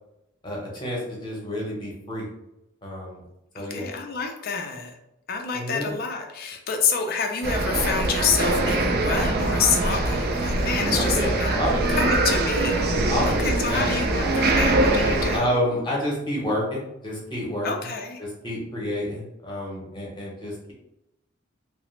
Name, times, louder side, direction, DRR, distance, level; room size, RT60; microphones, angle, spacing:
voice 1, 0.4-2.3 2.8-3.2 3.5-3.9 5.5-5.9 10.9-12.1 13.1-14.3 15.3-17.7 18.2-20.7, equal, 20° left, -4 dB, 0.8 m, -29 dB
voice 2, 3.6-5.0 5.3-11.6 11.9-15.6 17.6-18.2, left 5 dB, 45° left, 4 dB, 0.4 m, -28 dB
sound 1, 7.4-15.4, right 2 dB, 45° right, 0.4 m, -23 dB
2.8 x 2.0 x 3.1 m, 0.87 s
head